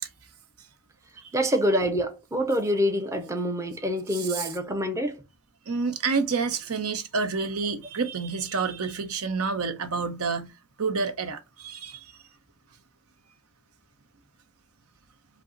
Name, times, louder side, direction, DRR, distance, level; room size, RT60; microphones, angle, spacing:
voice 1, 1.3-5.2, equal, 15° right, 0.6 m, -26 dB
voice 2, 4.1-4.5 5.7-10.5 10.8-12.2, right 4 dB, 85° right, 0.7 m, -29 dB
5.1 x 2.0 x 3.8 m
head